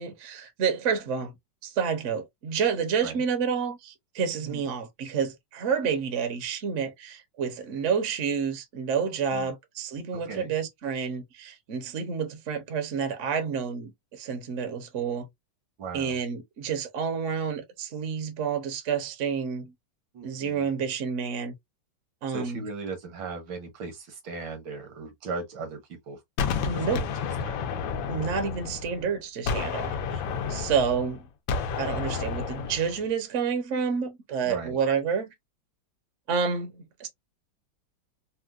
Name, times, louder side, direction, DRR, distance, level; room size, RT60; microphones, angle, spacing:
voice 1, 0.0-1.3 1.6-15.3 15.9-19.7 20.2-21.5 22.2-22.6 26.7-27.0 28.1-30.2 30.5-31.2 31.8-35.3 36.3-37.1, right 6 dB, 55° right, 0.8 m, -29 dB
voice 2, 10.1-10.5 15.8-16.2 20.1-20.7 22.3-26.2 26.7-27.6 30.6-30.7 34.5-34.8, right 4 dB, 80° right, 1.8 m, -38 dB
Gunshot gunfire, 26.4-29.1 29.5-33.0, left 5 dB, 80° left, 1.4 m, -31 dB
4.3 x 2.1 x 2.4 m
omnidirectional pair, 2.1 m